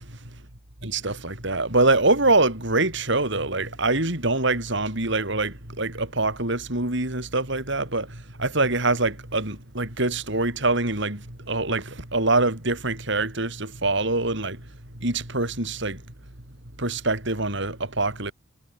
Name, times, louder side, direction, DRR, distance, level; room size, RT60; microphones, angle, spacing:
voice 1, 0.8-8.1 8.4-14.6 15.0-16.0 16.8-18.3, right 2 dB, 65° right, 6.0 m, -24 dB
head